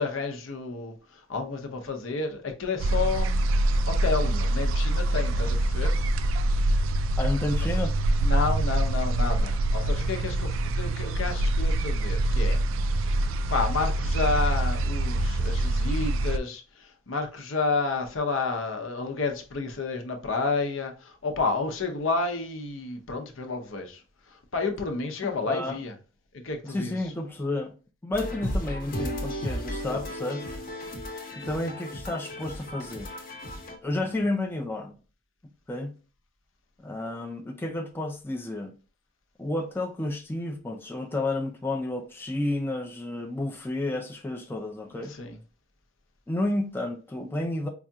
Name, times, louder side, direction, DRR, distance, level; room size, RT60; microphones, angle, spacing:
voice 1, 0.0-6.0 8.2-12.6 12.9-25.9 26.3-27.0 34.0-34.2 45.1-45.4, left 4 dB, 75° left, 0.7 m, -31 dB
sound 1, 2.8-16.4, right 1 dB, 75° right, 0.3 m, -25 dB
voice 2, 7.2-8.0 25.2-25.8 26.6-27.7 28.0-30.6 31.3-33.1 33.8-35.0 35.7-35.9 36.8-38.7 39.4-45.1 46.3-47.7, left 2 dB, 10° left, 0.4 m, -31 dB
sound 2, 28.1-33.8, equal, 45° left, 0.9 m, -34 dB
4.8 x 2.4 x 2.7 m
head